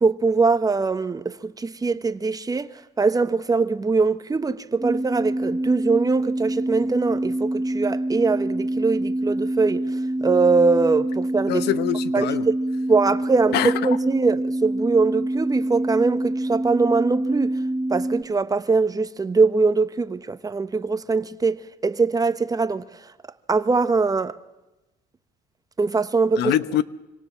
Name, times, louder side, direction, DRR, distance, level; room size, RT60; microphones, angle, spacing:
voice 1, 0.0-2.7 3.0-9.9 10.2-11.7 12.1-12.5 12.9-13.6 13.8-17.5 17.9-22.9 23.5-24.4 25.8-26.5, right 4 dB, 20° right, 1.2 m, -22 dB
sound 1, 4.8-18.2, right 1 dB, 5° right, 4.7 m, -26 dB
voice 2, 11.5-12.5 13.5-13.7 26.4-26.8, left 12 dB, 80° left, 1.1 m, -23 dB
26.0 x 25.5 x 7.2 m
cardioid pair, 110°, 17 cm